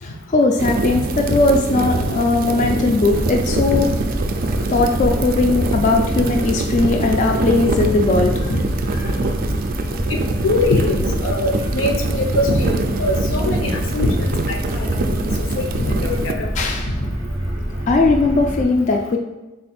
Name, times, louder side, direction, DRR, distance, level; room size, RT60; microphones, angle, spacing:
voice 1, 0.0-3.9 4.7-8.5 9.0-9.2 10.7-10.8 16.6-16.9 17.9-19.2, left 3 dB, 40° left, 3 dB, 0.3 m, -18 dB
sound 1, 0.6-16.3, right 3 dB, 45° right, 0.3 m, -25 dB
sound 2, 3.1-18.7, equal, 10° right, 0.6 m, -26 dB
voice 2, 10.4-12.7 13.0-15.4 15.8-16.5, left 2 dB, 85° left, 3 dB, 0.6 m, -22 dB
3.7 x 2.3 x 4.2 m, 1.1 s
head